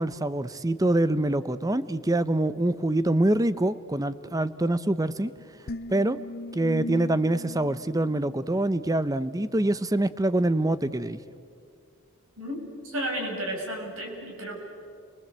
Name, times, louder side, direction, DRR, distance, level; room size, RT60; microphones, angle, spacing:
voice 1, 0.0-5.3 5.9-6.2 6.5-11.2, right 1 dB, 15° right, 14 dB, 0.7 m, -25 dB
sound 1, 5.7-9.0, left 2 dB, 45° left, 0.6 m, -39 dB
voice 2, 12.8-14.6, right 1 dB, 65° right, 1 dB, 6.4 m, -32 dB
30.0 x 23.0 x 8.1 m, 2.3 s
head